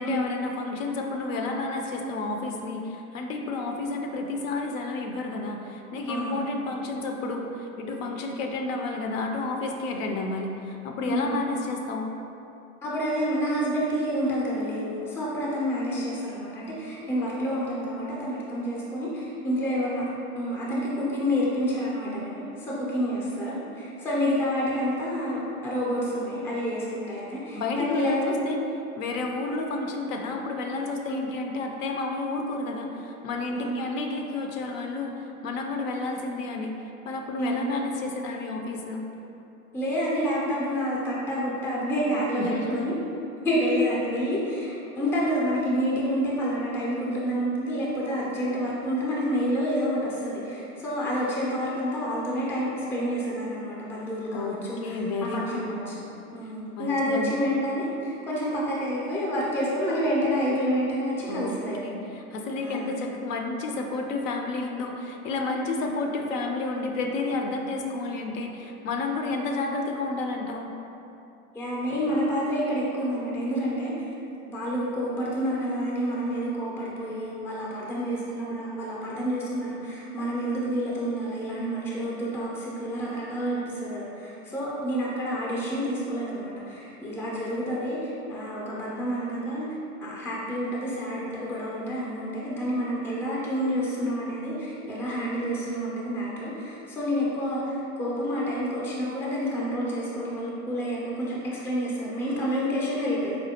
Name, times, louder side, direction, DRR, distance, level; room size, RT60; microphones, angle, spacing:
voice 1, 0.0-12.1 27.5-28.6 29.0-36.7 37.1-39.0 42.3-42.9 54.3-55.7 56.8-57.4 61.3-61.5 61.8-70.7, left 3 dB, 65° left, 2 dB, 0.5 m, -31 dB
voice 2, 6.1-6.5 11.0-11.5 12.8-28.3 31.1-31.2 33.5-33.8 37.4-37.7 39.7-42.9 43.4-55.9 56.3-61.8 62.6-62.9 71.5-73.9 74.5-103.4, equal, 5° left, -6 dB, 0.4 m, -28 dB
4.2 x 2.2 x 2.8 m, 2.8 s
hypercardioid pair, 95°, 43 cm